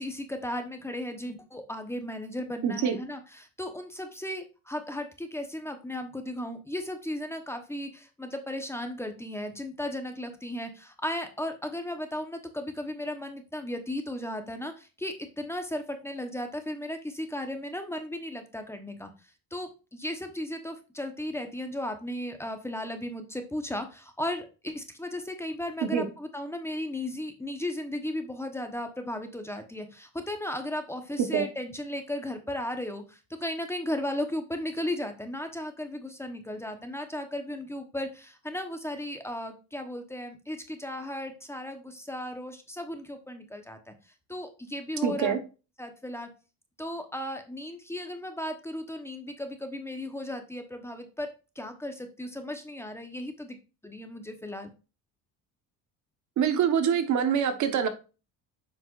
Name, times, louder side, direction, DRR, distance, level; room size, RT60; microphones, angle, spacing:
voice 1, 0.0-19.1 19.5-43.9 44.3-45.3 45.8-46.3 46.8-51.3 51.5-53.6 53.8-54.7, left 1 dB, 5° left, 1.0 m, -35 dB
voice 2, 2.6-3.0 25.8-26.1 31.3-31.4 45.0-45.4 56.4-57.9, right 8 dB, 55° right, 1.2 m, -25 dB
7.7 x 5.9 x 2.5 m
cardioid pair, 120°, 35 cm